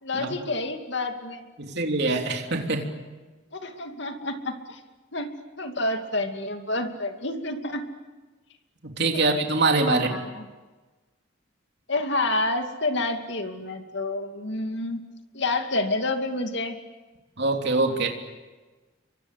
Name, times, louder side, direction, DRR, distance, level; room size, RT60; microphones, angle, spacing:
voice 1, 0.0-1.5 3.5-4.8 5.1-5.3 5.6-7.8 9.1-9.2 9.9-10.4 11.9-15.0 15.3-16.8, left 2 dB, 60° left, 5 dB, 2.6 m, -29 dB
voice 2, 1.6-2.9 8.8-10.1 17.4-18.1, right 3 dB, 55° right, 3 dB, 3.4 m, -24 dB
29.5 x 24.5 x 8.2 m, 1.2 s
head